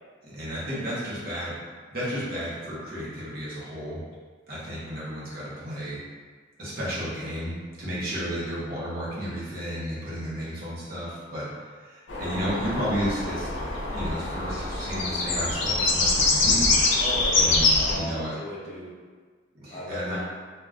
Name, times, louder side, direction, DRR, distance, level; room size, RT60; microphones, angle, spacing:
voice 1, 0.2-1.6 1.9-4.0 4.5-6.0 6.6-13.5 13.9-16.7 17.4-18.3 19.6-20.2, equal, 50° right, -8 dB, 0.9 m, -32 dB
sound 1, 12.1-17.9, left 3 dB, 80° left, 0.5 m, -24 dB
voice 2, 17.0-19.0 19.7-20.2, left 1 dB, 40° left, -6 dB, 0.6 m, -36 dB
2.2 x 2.2 x 3.6 m, 1.5 s
head